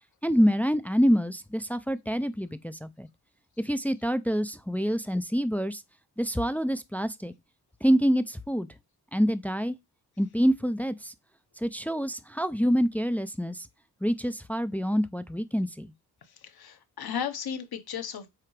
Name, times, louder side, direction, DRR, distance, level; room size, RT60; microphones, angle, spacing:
voice 1, 0.2-3.1 3.6-5.8 6.2-7.3 7.8-8.7 9.1-9.8 10.2-11.1 11.6-13.6 14.0-15.9, equal, 5° left, 0.4 m, -26 dB
voice 2, 16.2-18.3, left 8 dB, 70° left, 1.3 m, -35 dB
7.7 x 4.8 x 3.3 m
wide cardioid pair, 110°, 39 cm